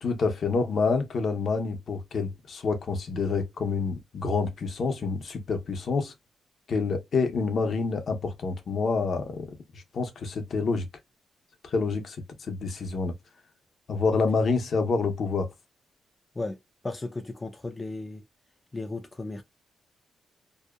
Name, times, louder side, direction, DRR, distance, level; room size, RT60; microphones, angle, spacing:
voice 1, 0.0-6.1 6.7-9.5 9.7-10.9 11.6-13.1 13.9-15.5, left 4 dB, 55° left, 0.6 m, -27 dB
voice 2, 16.8-18.2 18.7-19.4, left 2 dB, 20° left, 0.3 m, -35 dB
2.7 x 2.1 x 2.3 m
cardioid pair, 120°, 0 cm